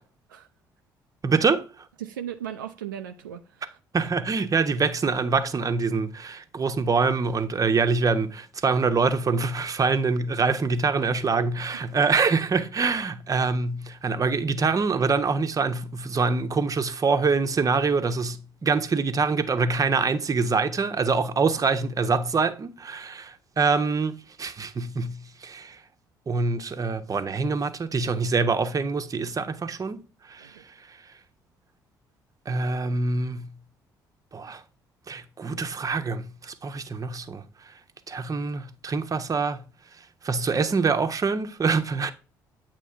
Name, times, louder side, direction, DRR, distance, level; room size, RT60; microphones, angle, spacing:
voice 1, 1.2-1.6 3.9-25.8 26.3-30.0 30.3-30.5 32.5-33.5 34.3-34.6 35.1-37.4 38.1-39.6 40.2-42.1, right 4 dB, 35° right, 0.9 m, -25 dB
voice 2, 2.0-3.8 30.4-30.6, right 10 dB, 90° right, 0.4 m, -37 dB
8.3 x 3.0 x 5.6 m
hypercardioid pair, 50°, 10 cm